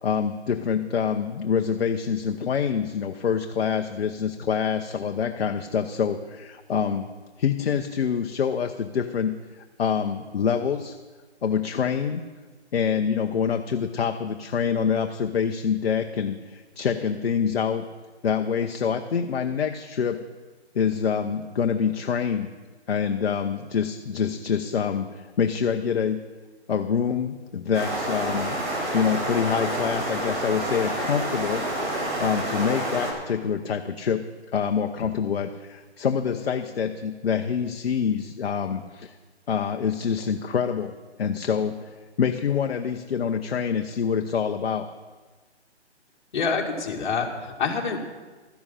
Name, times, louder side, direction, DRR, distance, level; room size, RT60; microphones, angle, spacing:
voice 1, 0.0-7.1 7.4-9.4 9.8-11.0 11.4-12.2 12.7-17.8 18.2-20.2 20.7-22.5 22.9-26.2 26.7-28.6 28.9-31.6 32.2-34.2 34.5-39.2 39.5-44.9, left 7 dB, 60° left, 6 dB, 0.9 m, -26 dB
sound 1, 27.7-33.1, right 1 dB, 45° right, 5.2 m, -28 dB
voice 2, 46.3-48.0, left 5 dB, 40° left, 0 dB, 2.2 m, -26 dB
13.0 x 10.5 x 5.6 m, 1.3 s
hypercardioid pair, 155°, 35 cm